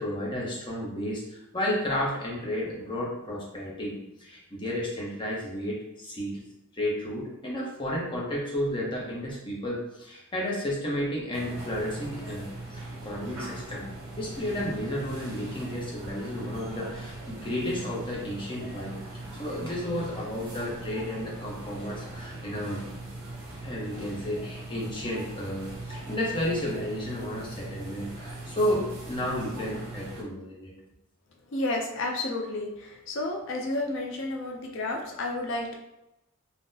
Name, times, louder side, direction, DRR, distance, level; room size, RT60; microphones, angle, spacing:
voice 1, 0.0-6.4 6.7-13.9 14.2-19.0 19.4-22.9 23.6-30.7, left 1 dB, 25° left, -4 dB, 0.7 m, -32 dB
sound 1, 11.3-30.2, right 2 dB, 65° right, 0.7 m, -40 dB
voice 2, 31.5-32.7 33.1-35.7, left 2 dB, 60° left, 1 dB, 0.4 m, -31 dB
3.7 x 2.0 x 2.6 m, 0.92 s
head